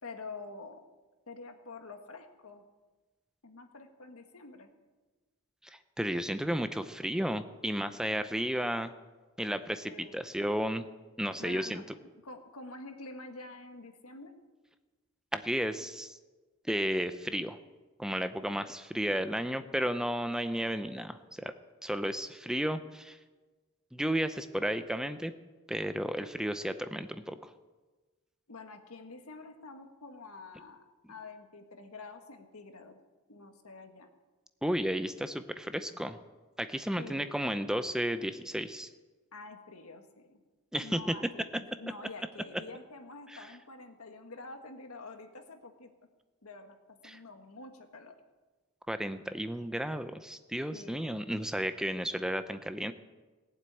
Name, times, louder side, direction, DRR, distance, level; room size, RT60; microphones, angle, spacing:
voice 1, 0.0-0.8 1.3-2.6 3.4-4.7 9.9-10.3 11.4-11.8 12.2-14.3 28.5-33.0 33.3-34.1 37.0-37.4 39.3-40.4 40.8-45.9 46.4-48.1 50.7-51.3 51.9-52.1, left 3 dB, 90° left, 6 dB, 1.7 m, -47 dB
voice 2, 6.0-8.9 9.4-10.9 11.2-11.8 15.3-16.2 16.6-17.6 18.0-21.5 21.8-23.2 23.9-25.3 25.7-27.5 34.6-36.2 36.6-38.9 40.7-41.1 47.0-47.2 48.9-52.9, equal, 5° right, 10 dB, 0.6 m, -33 dB
18.5 x 7.7 x 8.8 m, 1.3 s
head